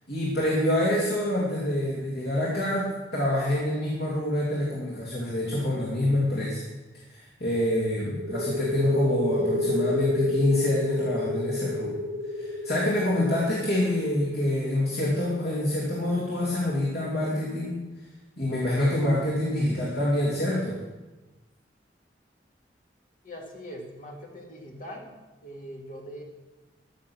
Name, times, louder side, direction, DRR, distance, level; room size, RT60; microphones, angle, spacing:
voice 1, 0.1-6.6 7.1-12.0 12.3-17.8 18.4-20.8, left 1 dB, 65° left, -6 dB, 2.7 m, -26 dB
sound 1, 8.1-15.6, left 1 dB, 80° right, 1.4 m, -29 dB
voice 2, 23.2-26.2, equal, 50° left, 1 dB, 2.1 m, -42 dB
14.0 x 6.8 x 6.2 m, 1.1 s
head